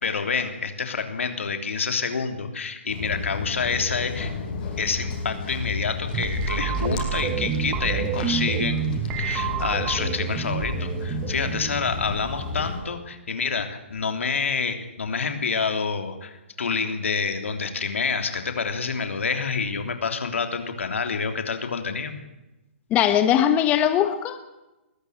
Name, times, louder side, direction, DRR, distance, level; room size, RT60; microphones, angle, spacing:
voice 1, 0.0-4.3 4.8-22.1, left 5 dB, 80° left, 6 dB, 3.3 m, -28 dB
Walk footsteps, 2.9-12.8, left 4 dB, 45° left, 6.4 m, -32 dB
sound 1, 6.1-13.0, right 10 dB, 20° right, 1.0 m, -29 dB
voice 2, 22.9-24.4, left 10 dB, 20° left, 9 dB, 1.3 m, -20 dB
20.5 x 14.0 x 9.4 m, 1.0 s
hypercardioid pair, 150°, 7 cm